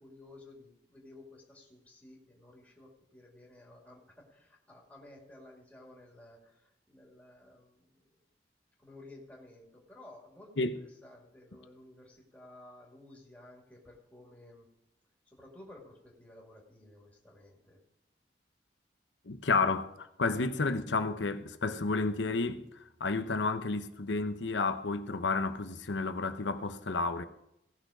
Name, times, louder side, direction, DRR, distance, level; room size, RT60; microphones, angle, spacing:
voice 1, 0.0-7.9 8.8-10.7 11.0-14.7 15.3-17.8, left 1 dB, 10° left, 2.3 m, -54 dB
voice 2, 19.3-22.6 23.0-27.3, left 3 dB, 85° left, 0.9 m, -31 dB
17.5 x 6.5 x 5.0 m
head